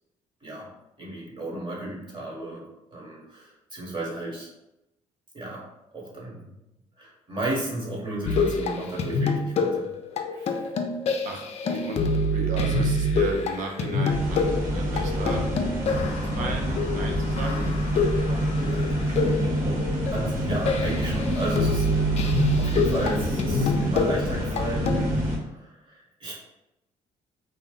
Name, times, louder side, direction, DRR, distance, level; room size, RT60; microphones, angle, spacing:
voice 1, 1.0-2.6 2.9-4.5 5.3-5.6 5.9-6.5 7.0-9.9 10.3-10.7 18.8-18.9 20.1-21.9 22.6-25.0 25.6-26.3, right 1 dB, 35° right, -3 dB, 1.2 m, -33 dB
sound 1, 8.3-25.0, left 2 dB, 55° left, 0.4 m, -27 dB
voice 2, 11.2-15.5 16.2-17.7 18.3-18.7 24.9-25.1, right 3 dB, 75° right, 1 dB, 0.6 m, -35 dB
sound 2, 14.1-25.4, equal, 60° right, 1.0 m, -27 dB
2.5 x 2.0 x 3.7 m, 0.91 s
supercardioid pair, 75°, 13 cm